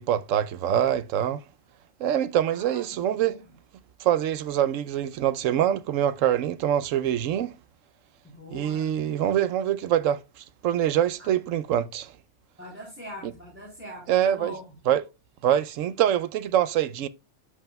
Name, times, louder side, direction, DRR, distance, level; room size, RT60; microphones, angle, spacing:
voice 1, 0.0-1.4 2.0-3.4 4.0-7.5 8.5-12.1 13.2-13.3 14.1-14.5 14.9-15.0 15.4-17.1, right 10 dB, 85° right, 1.0 m, -24 dB
voice 2, 2.4-3.4 8.2-9.3 12.6-14.7, equal, 10° right, 3.2 m, -43 dB
13.0 x 4.9 x 2.2 m
omnidirectional pair, 1.3 m